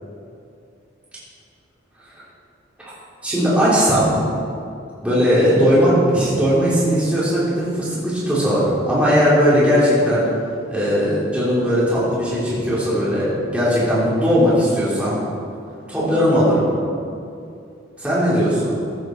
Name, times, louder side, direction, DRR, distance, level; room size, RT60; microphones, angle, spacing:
voice 1, 3.2-4.1 5.0-10.2 10.7-15.2 15.9-16.6 18.0-18.7, equal, 5° right, -10 dB, 3.3 m, -18 dB
15.0 x 9.5 x 4.5 m, 2.5 s
head